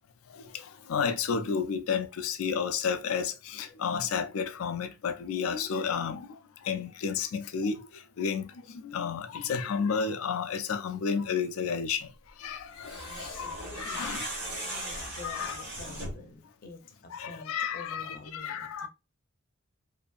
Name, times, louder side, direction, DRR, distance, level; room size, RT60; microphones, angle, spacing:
voice 1, 0.3-14.3 15.2-15.6 17.1-18.9, left 6 dB, 90° left, 0.4 m, -32 dB
sound 1, 12.7-16.3, right 1 dB, 55° right, 1.3 m, -38 dB
voice 2, 13.1-14.1 14.7-18.9, left 3 dB, 45° left, 0.6 m, -48 dB
2.6 x 2.6 x 2.3 m
head